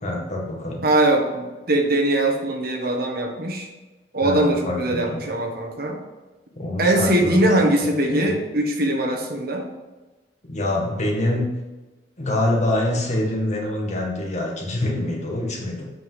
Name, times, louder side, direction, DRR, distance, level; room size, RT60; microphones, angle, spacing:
voice 1, 0.0-0.8 4.2-5.2 6.6-7.5 7.8-8.3 10.4-11.5 12.2-15.9, left 1 dB, 40° left, -1 dB, 1.8 m, -25 dB
voice 2, 0.8-3.7 4.1-6.0 6.8-9.7, right 1 dB, 60° right, 2 dB, 1.4 m, -21 dB
7.9 x 5.3 x 5.7 m, 1.2 s
head